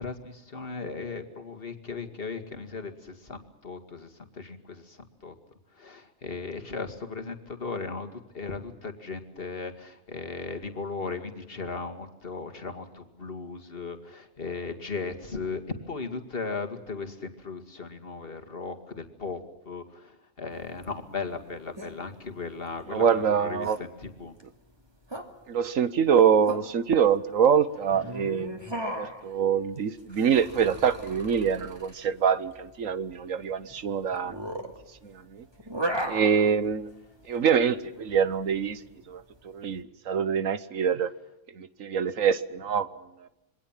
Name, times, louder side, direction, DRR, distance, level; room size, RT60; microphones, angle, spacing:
voice 1, 0.0-5.3 5.7-15.6 15.9-19.4 19.7-24.3, left 4 dB, 45° left, 6 dB, 2.5 m, -37 dB
sound 1, 20.5-39.8, right 1 dB, 20° right, 2.6 m, -38 dB
voice 2, 22.9-23.8 25.5-28.5 28.8-34.4 35.0-35.4 36.1-36.9 37.3-38.8 39.1-41.1 41.6-43.3, right 7 dB, 85° right, 14 dB, 1.5 m, -25 dB
27.0 x 23.0 x 7.4 m, 0.91 s
omnidirectional pair, 1.3 m